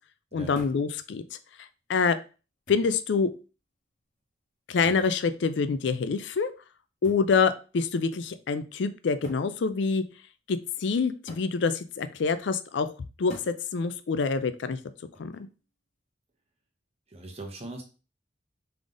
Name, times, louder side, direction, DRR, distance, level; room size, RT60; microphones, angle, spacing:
voice 1, 0.3-1.2 1.9-2.2 2.7-3.3 4.7-6.5 7.0-10.0 10.5-12.9 13.2-14.8 15.2-15.5, left 5 dB, 70° left, 11 dB, 0.4 m, -26 dB
sound 1, 0.6-0.9 1.9-2.0 2.7-3.0 4.8-5.2 7.0-7.3 8.4-8.5 9.2-9.5 11.3-11.6 13.3-13.6 15.1-15.5, equal, 45° left, 1.2 m, -46 dB
voice 2, 17.1-17.8, right 2 dB, 35° right, 2 dB, 1.0 m, -40 dB
3.7 x 3.5 x 3.8 m, 0.34 s
head